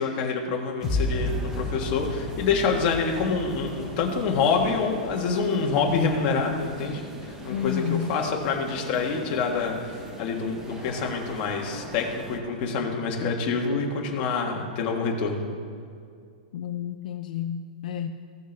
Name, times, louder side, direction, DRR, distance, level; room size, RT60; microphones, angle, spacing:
voice 1, 0.0-15.4, left 5 dB, 30° left, 0 dB, 1.3 m, -26 dB
sound 1, 0.8-6.8, left 2 dB, 15° left, 1.0 m, -33 dB
sound 2, 0.8-12.4, right 1 dB, 10° right, 0.7 m, -41 dB
voice 2, 7.5-8.1 13.7-13.8 16.5-18.1, left 9 dB, 60° left, 6 dB, 0.4 m, -30 dB
16.0 x 6.5 x 3.3 m, 2.3 s
supercardioid pair, 165°, 5 cm